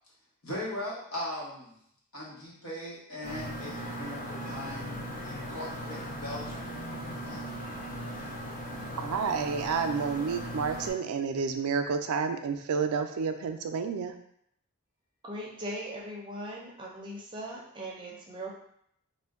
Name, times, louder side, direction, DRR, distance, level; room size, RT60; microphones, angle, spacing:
voice 1, 0.4-1.7 2.1-6.7 7.2-7.4 8.1-8.3, left 1 dB, 70° left, -5 dB, 1.0 m, -39 dB
sound 1, 3.2-10.9, equal, 40° left, 0.5 m, -38 dB
voice 2, 9.0-14.2, right 5 dB, 90° right, 7 dB, 0.3 m, -30 dB
voice 3, 15.2-18.5, right 1 dB, 20° right, -2 dB, 0.5 m, -39 dB
2.5 x 2.1 x 3.5 m, 0.70 s
head